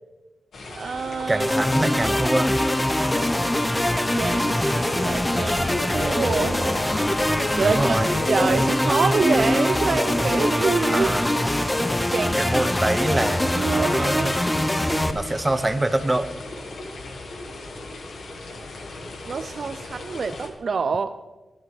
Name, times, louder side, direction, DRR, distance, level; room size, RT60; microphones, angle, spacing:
sound 1, 0.5-20.5, left 2 dB, 75° left, 1.8 m, -38 dB
voice 1, 0.7-1.4 1.9-2.2 4.2-6.6 7.6-8.0 8.3-11.1 11.4-11.5 12.1-12.5 13.2-13.3 13.6-14.4 19.3-21.1, right 5 dB, 65° right, 10 dB, 0.5 m, -26 dB
voice 2, 1.3-2.6 7.6-8.2 10.9-11.5 12.4-14.3 15.1-16.3, right 2 dB, 20° right, 10 dB, 0.9 m, -25 dB
sound 2, 1.4-15.1, left 1 dB, 15° left, 0.8 m, -23 dB
Subway metro underground, 4.3-11.0, left 1 dB, 50° left, 3.9 m, -35 dB
19.5 x 10.5 x 3.4 m, 1.2 s
cardioid pair, 65°, 0 cm